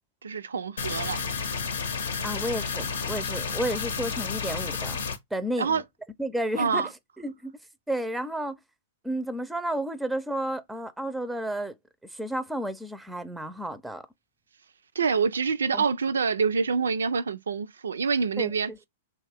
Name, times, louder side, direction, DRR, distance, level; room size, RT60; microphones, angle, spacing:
voice 1, 0.2-1.2 5.6-5.8 6.6-6.9 15.0-18.7, right 5 dB, 85° right, 0.4 m, -26 dB
sound 1, 0.8-5.2, left 5 dB, 80° left, 0.7 m, -31 dB
voice 2, 2.2-5.0 5.3-5.8 6.2-6.9 7.2-7.6 7.9-8.6 9.0-11.8 12.1-14.0 15.7-15.8 18.4-18.5, right 1 dB, 5° right, 0.4 m, -31 dB
3.1 x 2.3 x 3.4 m
hypercardioid pair, 120°, 0 cm